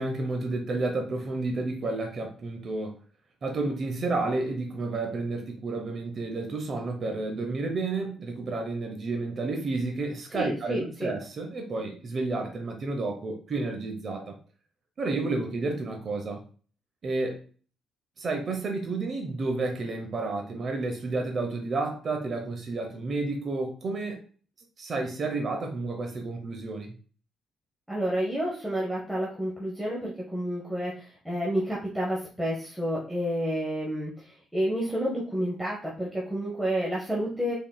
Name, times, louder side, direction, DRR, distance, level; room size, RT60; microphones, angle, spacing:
voice 1, 0.0-3.0 3.4-14.4 15.0-16.4 17.0-17.4 18.2-24.2 24.8-26.9, right 3 dB, 50° right, 3 dB, 0.7 m, -31 dB
voice 2, 10.3-11.1 27.9-37.5, equal, ahead, -5 dB, 0.9 m, -30 dB
3.7 x 3.6 x 2.2 m, 0.41 s
cardioid pair, 90°, 0 cm